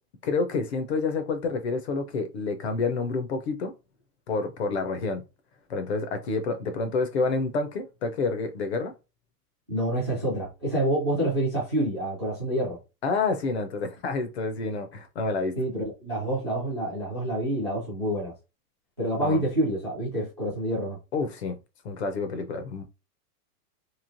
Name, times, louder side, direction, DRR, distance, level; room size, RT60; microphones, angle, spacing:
voice 1, 0.2-3.7 4.3-5.2 5.7-8.9 13.0-15.5 19.2-19.5 21.1-21.6 21.8-22.8, left 4 dB, 45° left, 0.4 m, -28 dB
voice 2, 9.7-12.8 15.6-18.3 19.0-21.0, right 1 dB, 20° right, 0.3 m, -27 dB
3.0 x 2.7 x 2.5 m
supercardioid pair, 175°, 48 cm